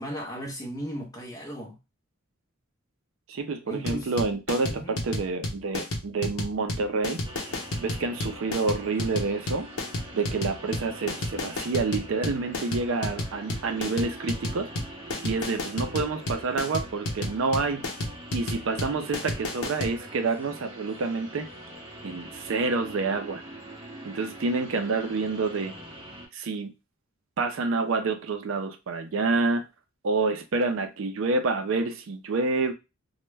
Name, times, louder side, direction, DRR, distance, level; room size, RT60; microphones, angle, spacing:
voice 1, 0.0-1.8 3.7-4.1 4.7-4.9, equal, 15° left, 0.6 m, -36 dB
voice 2, 3.3-7.2 7.8-9.7 10.1-14.7 15.2-17.9 18.3-21.5 22.0-23.4 24.0-25.7 26.3-26.7 27.4-29.6 30.0-32.7, right 3 dB, 65° right, 0.4 m, -28 dB
sound 1, 3.9-19.9, left 1 dB, 85° left, 0.8 m, -31 dB
sound 2, 7.2-26.3, right 1 dB, 25° right, 0.7 m, -44 dB
2.2 x 2.1 x 3.2 m
head